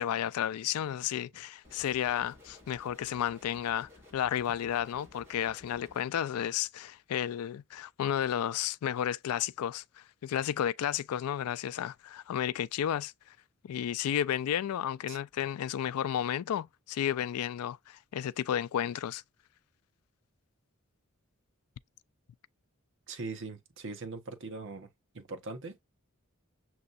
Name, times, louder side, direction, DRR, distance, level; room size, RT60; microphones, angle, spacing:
voice 1, 0.0-13.1 13.6-19.2, left 10 dB, 85° left, 0.3 m, -32 dB
sound 1, 1.6-6.0, left 2 dB, 10° right, 4.1 m, -56 dB
voice 2, 23.1-24.9 25.1-25.9, right 3 dB, 60° right, 1.1 m, -41 dB
6.7 x 3.0 x 2.5 m
head